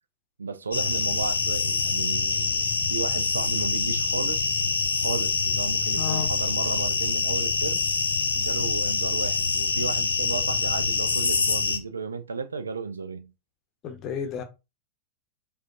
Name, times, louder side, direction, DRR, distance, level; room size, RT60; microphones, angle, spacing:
voice 1, 0.4-4.6 5.0-7.8 8.3-13.3, right 5 dB, 75° right, 0.4 m, -33 dB
sound 1, 0.7-11.8, left 4 dB, 75° left, 0.5 m, -25 dB
voice 2, 6.0-6.3 13.8-14.4, left 7 dB, 35° left, 0.7 m, -31 dB
4.9 x 2.4 x 2.6 m
figure-of-eight pair, 90°, 0 cm